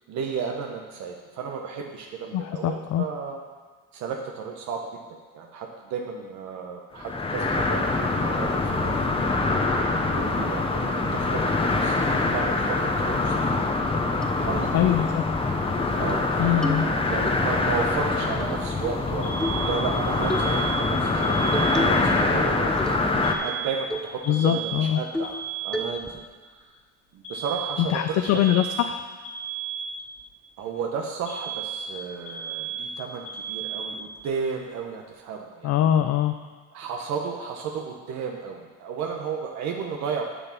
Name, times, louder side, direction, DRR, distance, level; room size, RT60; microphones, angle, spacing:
voice 1, 0.1-3.4 3.9-4.9 5.3-9.3 10.1-13.6 14.4-14.7 16.0-22.8 23.4-25.4 25.6-26.2 27.1-28.6 30.6-35.7 36.7-40.2, right 6 dB, 70° right, 2 dB, 1.0 m, -33 dB
voice 2, 2.3-3.0 14.7-15.3 16.4-16.9 24.3-25.0 27.8-29.0 35.6-36.3, left 11 dB, 60° left, 7 dB, 0.5 m, -23 dB
sound 1, 7.0-23.3, left 3 dB, 20° left, 0.9 m, -24 dB
sound 2, 14.2-14.3 14.9-15.1 15.5-15.6 15.9-16.3 16.6-17.4 18.4-19.0 19.4-19.7 20.3-20.5 21.5-22.1 22.4-23.1 23.5-23.6 23.9-24.1 24.5-24.6 25.1-25.5 25.7-26.2, equal, ahead, 0.5 m, -32 dB
Alarm, 19.2-22.2 23.2-26.2 27.2-30.2 31.3-34.2, right 6 dB, 80° left, 2.5 m, -34 dB
6.9 x 6.7 x 5.8 m, 1.5 s
cardioid pair, 120°, 29 cm